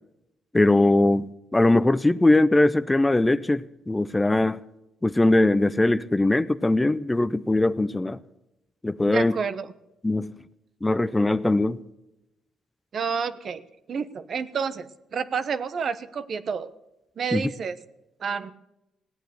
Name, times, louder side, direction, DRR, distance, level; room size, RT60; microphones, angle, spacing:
voice 1, 0.5-4.6 5.0-8.2 8.8-9.4 10.0-10.3 10.8-11.8 17.3-17.4, left 2 dB, 15° left, 15 dB, 0.6 m, -21 dB
voice 2, 9.0-9.7 12.9-13.6 13.9-16.7 17.2-17.8 18.2-18.5, right 6 dB, 55° right, 13 dB, 1.1 m, -29 dB
17.5 x 9.1 x 8.0 m, 0.90 s
cardioid pair, 90°, 0 cm